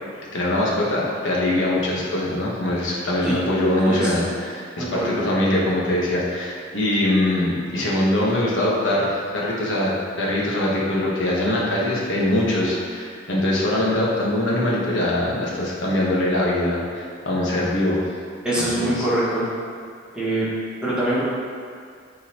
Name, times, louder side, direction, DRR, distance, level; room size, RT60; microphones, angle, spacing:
voice 1, 0.3-18.1 18.5-19.1, left 1 dB, 75° left, -4 dB, 1.2 m, -22 dB
voice 2, 3.8-4.2 4.8-5.1 18.4-19.5 20.1-20.5 20.8-21.2, right 1 dB, 5° right, -10 dB, 1.6 m, -23 dB
8.8 x 4.0 x 3.0 m, 2.2 s
head